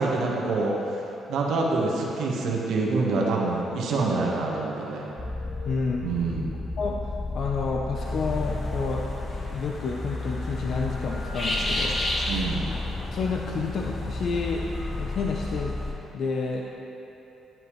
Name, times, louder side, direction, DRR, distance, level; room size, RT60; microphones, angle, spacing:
voice 1, 0.0-5.1 6.0-6.5 12.3-12.6, right 3 dB, 80° right, -3 dB, 1.3 m, -26 dB
sound 1, 5.2-15.9, left 2 dB, 20° left, 1.1 m, -33 dB
voice 2, 5.6-6.5 6.8-7.0 7.3-9.1 9.5-12.0 13.1-14.6 15.0-15.7 16.1-16.6, left 4 dB, 60° left, 0 dB, 0.7 m, -29 dB
sound 2, 7.9-15.9, left 1 dB, 40° left, 1.5 m, -34 dB
10.5 x 10.0 x 3.1 m, 2.9 s
cardioid pair, 90°, 0 cm